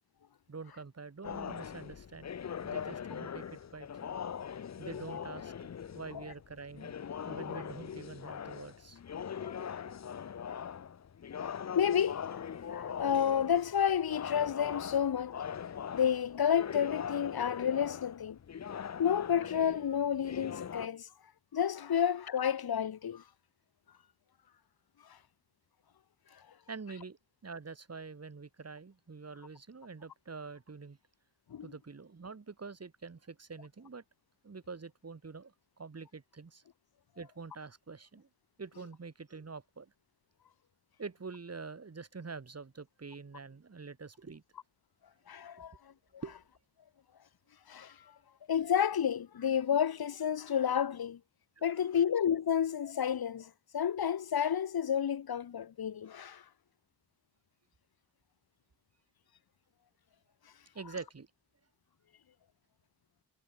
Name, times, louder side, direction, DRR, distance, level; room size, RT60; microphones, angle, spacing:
voice 1, 0.5-2.4 2.6-4.1 4.8-6.9 7.3-9.0 26.7-31.0 31.6-34.0 34.4-36.6 37.2-38.3 38.6-39.9 41.0-44.4 45.6-45.7 46.2-46.4 51.6-51.7 60.7-61.3, right 4 dB, 40° right, 1.9 m, -46 dB
sound 1, 1.2-20.9, left 8 dB, 40° left, 0.6 m, -41 dB
voice 2, 9.4-9.7 11.7-15.4 15.9-18.4 19.0-21.1 21.5-23.2 31.5-31.7 45.3-45.7 46.1-46.2 47.7-48.0 48.5-51.2 51.6-56.4, left 8 dB, 65° left, 1.1 m, -30 dB
cardioid pair, 60°, 40 cm